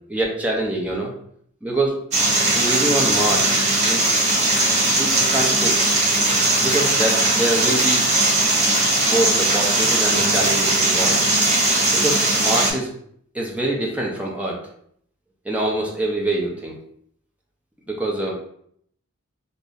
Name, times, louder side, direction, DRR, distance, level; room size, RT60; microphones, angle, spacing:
voice 1, 0.1-1.1 1.6-2.0 2.5-3.5 3.8-4.1 5.0-5.8 6.6-8.1 9.0-11.2 11.9-12.9 13.3-14.6 15.4-16.8 17.9-18.3, right 1 dB, 5° right, -2 dB, 0.6 m, -24 dB
sound 1, 2.1-12.7, right 2 dB, 35° right, 0.9 m, -19 dB
3.0 x 2.6 x 3.8 m, 0.67 s
head